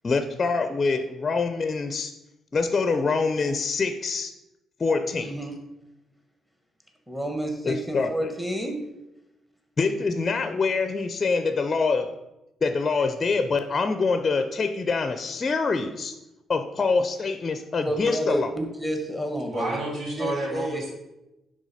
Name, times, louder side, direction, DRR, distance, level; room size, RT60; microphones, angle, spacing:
voice 1, 0.0-2.1 2.5-4.3 4.8-5.3 7.6-8.1 9.8-12.1 12.6-16.1 16.5-18.5, left 4 dB, 35° left, 8 dB, 0.5 m, -25 dB
voice 2, 5.2-5.5 7.1-8.8 17.8-19.8 20.2-20.8, right 1 dB, 5° right, 4 dB, 1.3 m, -30 dB
voice 3, 19.5-20.9, right 1 dB, 60° right, -4 dB, 2.7 m, -30 dB
9.9 x 3.6 x 4.1 m, 0.94 s
cardioid pair, 90°, 0 cm